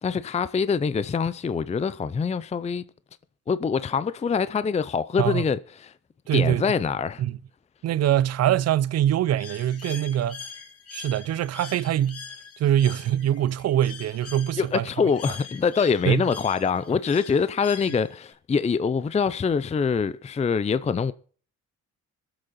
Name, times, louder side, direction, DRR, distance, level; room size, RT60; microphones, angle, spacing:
voice 1, 0.0-2.8 3.5-5.9 6.3-7.2 14.6-21.1, left 5 dB, 20° left, 0.5 m, -24 dB
voice 2, 6.3-6.6 7.2-7.4 7.8-10.4 10.9-12.2 12.6-14.9 16.1-16.2, right 11 dB, 55° right, 0.5 m, -23 dB
Bird, 9.4-18.3, left 6 dB, 50° left, 2.3 m, -43 dB
21.0 x 7.9 x 4.1 m
cardioid pair, 90°, 30 cm